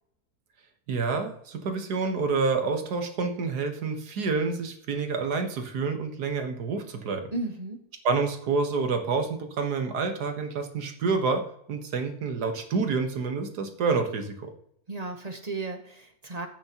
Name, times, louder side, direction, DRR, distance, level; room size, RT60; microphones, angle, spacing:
voice 1, 0.9-7.3 8.0-14.5, right 4 dB, 85° right, 6 dB, 1.8 m, -28 dB
voice 2, 7.3-7.8 14.9-16.5, right 3 dB, 30° right, 6 dB, 0.9 m, -34 dB
11.5 x 8.5 x 2.9 m, 0.69 s
omnidirectional pair, 1.7 m